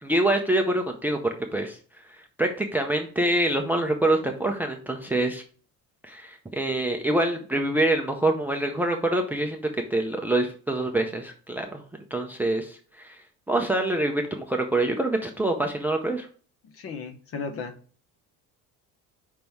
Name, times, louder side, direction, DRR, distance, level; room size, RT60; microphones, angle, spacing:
voice 1, 0.0-5.4 6.0-11.8 12.1-16.3, right 1 dB, 5° right, 4 dB, 0.5 m, -26 dB
voice 2, 16.6-17.8, left 5 dB, 40° left, 8 dB, 1.1 m, -35 dB
5.3 x 5.3 x 4.5 m, 0.41 s
cardioid pair, 155°, 34 cm